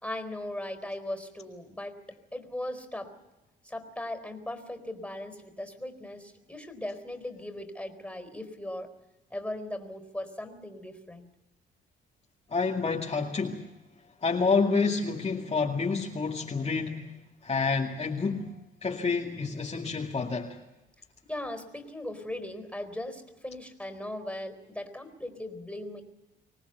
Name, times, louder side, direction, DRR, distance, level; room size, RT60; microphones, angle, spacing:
voice 1, 0.0-2.0 2.3-3.1 3.6-8.9 9.3-11.3 21.3-26.0, left 1 dB, 5° left, 7 dB, 4.2 m, -38 dB
voice 2, 12.5-13.6 14.2-17.0 17.4-18.5 18.8-20.6, left 4 dB, 30° left, -1 dB, 2.3 m, -28 dB
25.0 x 19.0 x 8.2 m, 0.97 s
cardioid pair, 90°, 20 cm